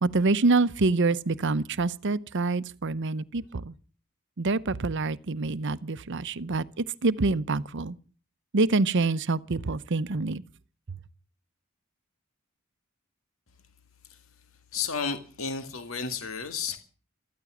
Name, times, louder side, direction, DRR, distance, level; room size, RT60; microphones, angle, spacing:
voice 1, 0.0-3.7 4.4-8.0 8.5-10.4 10.9-11.0, right 3 dB, 60° right, 0.8 m, -26 dB
voice 2, 14.7-16.8, left 5 dB, 80° left, 2.0 m, -32 dB
14.0 x 14.0 x 7.2 m
head